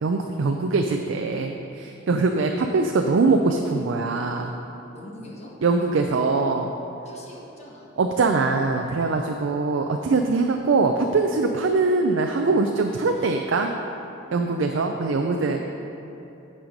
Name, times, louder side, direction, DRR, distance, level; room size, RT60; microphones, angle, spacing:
voice 1, 0.0-4.6 5.6-6.7 8.0-13.7 14.3-15.6, right 3 dB, 75° right, 3 dB, 0.4 m, -22 dB
voice 2, 4.9-5.5 7.0-7.9 9.0-9.3 13.2-13.4 14.2-14.5 15.5-15.6, left 1 dB, 35° left, -3 dB, 1.2 m, -44 dB
8.7 x 5.6 x 5.1 m, 2.9 s
head